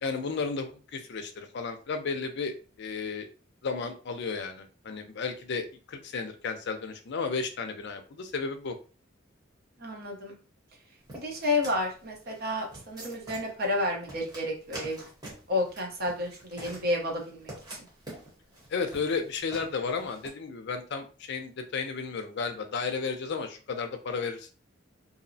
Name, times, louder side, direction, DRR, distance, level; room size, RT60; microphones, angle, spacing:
voice 1, 0.0-3.3 3.6-8.8 18.7-24.5, left 4 dB, 60° left, 6 dB, 0.4 m, -33 dB
voice 2, 9.8-10.4 11.1-15.1 15.5-17.8, left 2 dB, 50° right, 1 dB, 0.8 m, -31 dB
sound 1, 11.1-20.3, right 1 dB, 20° right, 0.9 m, -46 dB
2.6 x 2.0 x 2.6 m, 0.36 s
head